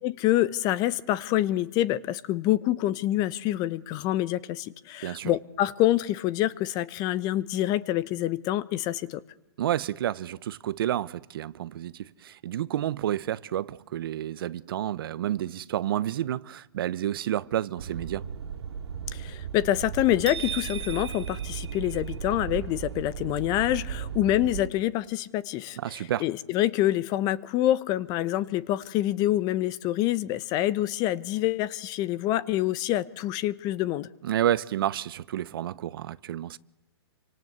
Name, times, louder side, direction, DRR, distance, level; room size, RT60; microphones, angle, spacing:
voice 1, 0.0-9.2 19.1-34.1, left 14 dB, 30° left, 1.0 m, -26 dB
voice 2, 9.6-18.2 25.8-26.3 34.2-36.6, right 12 dB, 55° right, 0.9 m, -30 dB
sound 1, 17.8-24.7, right 8 dB, 75° right, 2.8 m, -36 dB
sound 2, 20.3-22.4, right 7 dB, 90° right, 0.9 m, -38 dB
29.0 x 25.0 x 8.1 m
hypercardioid pair, 145°, 14 cm